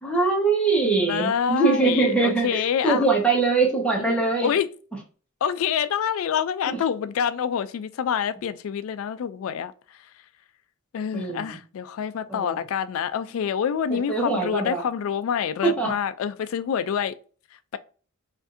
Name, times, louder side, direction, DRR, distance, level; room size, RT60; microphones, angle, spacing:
voice 1, 0.0-4.5 6.7-6.8 11.1-11.6 12.3-12.6 13.9-14.8 15.6-15.9, right 3 dB, 5° left, 1.1 m, -23 dB
voice 2, 0.8-3.1 4.0-4.7 5.4-9.7 10.9-17.2, left 8 dB, 70° left, 0.3 m, -27 dB
4.7 x 2.6 x 2.5 m
head